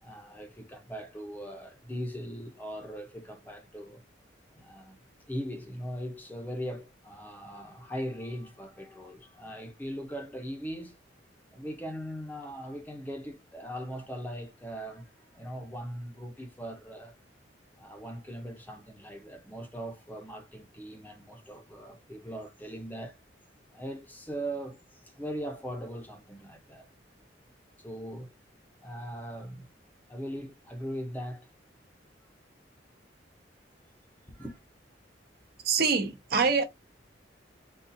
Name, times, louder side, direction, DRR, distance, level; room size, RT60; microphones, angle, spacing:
voice 1, 0.0-4.0 4.5-5.0 5.3-10.9 11.5-17.2 17.8-23.2 23.7-24.8 25.2-26.9 27.8-28.3 28.8-29.7 30.1-31.5 34.3-34.6, equal, 10° left, 0.6 m, -40 dB
voice 2, 35.6-36.6, right 5 dB, 60° right, 0.8 m, -25 dB
4.0 x 2.4 x 2.6 m
head